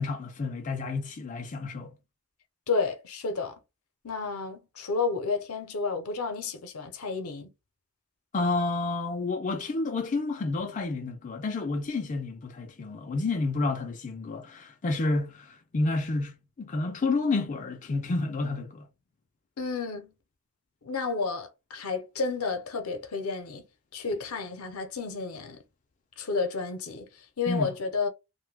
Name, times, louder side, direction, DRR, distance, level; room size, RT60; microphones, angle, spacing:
voice 1, 0.0-2.0 8.3-18.9 27.5-27.7, left 3 dB, 35° left, 0.4 m, -30 dB
voice 2, 2.7-3.6 4.0-7.5 19.6-20.1 20.8-23.7 23.9-25.6 26.2-28.1, left 4 dB, 75° left, 0.7 m, -31 dB
2.6 x 2.2 x 3.3 m
head